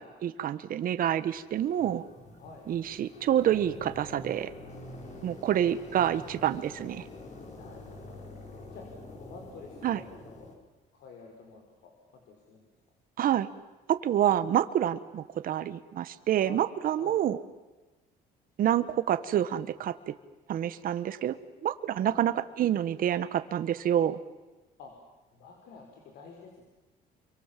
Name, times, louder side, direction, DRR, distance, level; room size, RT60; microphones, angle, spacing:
voice 1, 0.0-2.0 2.7-4.5 5.2-7.1 9.8-10.0 13.2-13.5 13.9-17.4 18.6-20.1 20.5-21.4 21.6-24.2, right 10 dB, 60° right, 12 dB, 1.3 m, -27 dB
sound 1, 1.3-10.5, left 2 dB, 45° left, 5.7 m, -46 dB
voice 2, 2.4-2.7 5.5-5.6 7.5-8.4 8.7-8.8 9.1-10.5 10.9-12.7 16.4-16.6 17.0-17.2 22.1-22.3 24.8-24.9 25.3-26.6, left 4 dB, 75° left, 1 dB, 5.3 m, -50 dB
29.5 x 24.0 x 7.6 m, 1.2 s
cardioid pair, 110°, 17 cm